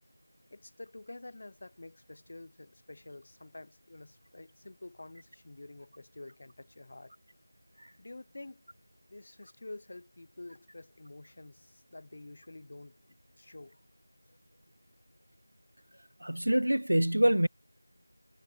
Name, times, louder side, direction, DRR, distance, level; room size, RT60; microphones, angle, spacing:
voice 1, 0.5-7.1 8.0-8.7 9.1-13.8, left 2 dB, 30° left, 5.9 m, -49 dB
voice 2, 16.2-17.5, right 1 dB, 80° right, 0.7 m, -25 dB
figure-of-eight pair, 175°, 0 cm